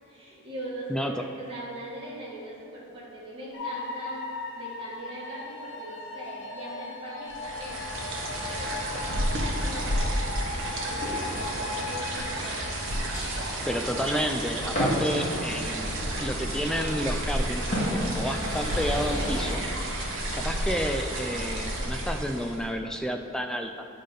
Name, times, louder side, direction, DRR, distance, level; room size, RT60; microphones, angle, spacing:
voice 1, 0.1-4.3 4.6-10.2 10.5-12.8, right 1 dB, 25° right, -7 dB, 1.9 m, -41 dB
voice 2, 0.9-1.2 13.7-19.6 20.1-23.7, equal, 5° left, 5 dB, 0.3 m, -31 dB
sound 1, 3.5-15.8, left 3 dB, 55° left, 0.7 m, -38 dB
sound 2, 7.3-22.7, right 1 dB, 60° right, 1.2 m, -31 dB
sound 3, 10.1-19.5, equal, 35° left, 1.9 m, -35 dB
10.5 x 3.7 x 5.2 m, 2.6 s
head